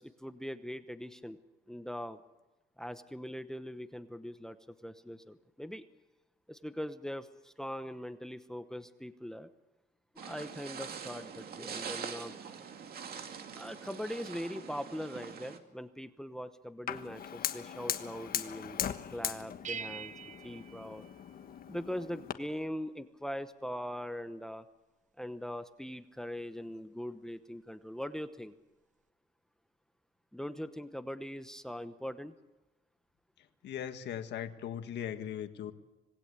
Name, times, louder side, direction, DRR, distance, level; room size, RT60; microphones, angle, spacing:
voice 1, 0.0-1.4 1.7-2.2 2.8-4.6 4.8-5.8 6.5-9.5 10.2-12.3 13.5-20.1 20.4-21.1 21.7-24.6 25.2-28.5 30.3-32.3, equal, 5° left, 10 dB, 1.0 m, -41 dB
sound 1, 10.2-15.6, right 6 dB, 60° right, 2.4 m, -44 dB
Fire, 16.9-22.3, left 9 dB, 60° left, 1.4 m, -39 dB
sound 2, 19.6-21.9, right 6 dB, 45° right, 0.8 m, -45 dB
voice 2, 33.6-35.7, left 9 dB, 90° left, 8 dB, 1.7 m, -39 dB
26.0 x 19.5 x 8.3 m, 1.1 s
cardioid pair, 135°, 17 cm